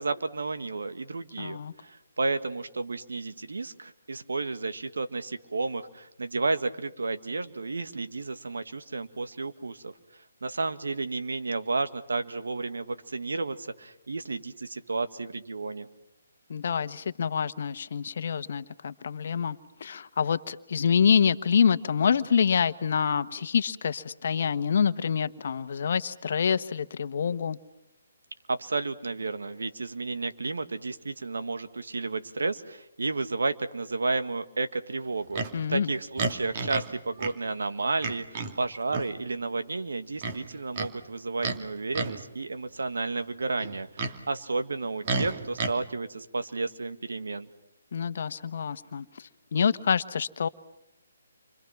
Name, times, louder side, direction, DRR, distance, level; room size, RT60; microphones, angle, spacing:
voice 1, 0.0-9.9 10.4-15.9 28.5-35.4 35.7-47.5, right 3 dB, 80° right, 9 dB, 1.9 m, -32 dB
voice 2, 1.4-1.7 16.5-27.6 35.5-35.9 47.9-50.5, left 7 dB, 60° left, 12 dB, 1.2 m, -26 dB
Livestock farm animals working animals, 35.3-35.5 36.2-36.9 37.2-37.4 38.0-38.5 38.9-39.1 40.2-40.9 41.4-41.6 41.9-42.2 43.6-44.2 45.0-45.7, right 4 dB, 40° right, 2.6 m, -31 dB
29.5 x 25.5 x 6.0 m, 0.82 s
hypercardioid pair, 150°, 0 cm